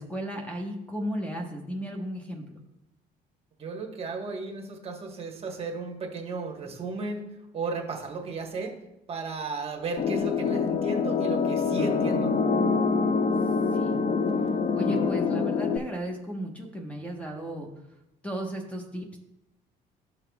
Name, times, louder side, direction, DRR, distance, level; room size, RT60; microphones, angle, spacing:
voice 1, 0.0-2.4 13.7-14.0 14.7-17.7 18.2-19.2, right 1 dB, 10° left, 1 dB, 1.1 m, -35 dB
voice 2, 3.6-7.2 7.5-8.8 9.1-12.3, right 4 dB, 35° right, 1 dB, 1.3 m, -34 dB
sound 1, 10.0-15.8, left 4 dB, 40° left, 0.5 m, -25 dB
12.5 x 5.8 x 2.3 m, 0.92 s
cardioid pair, 110°, 17 cm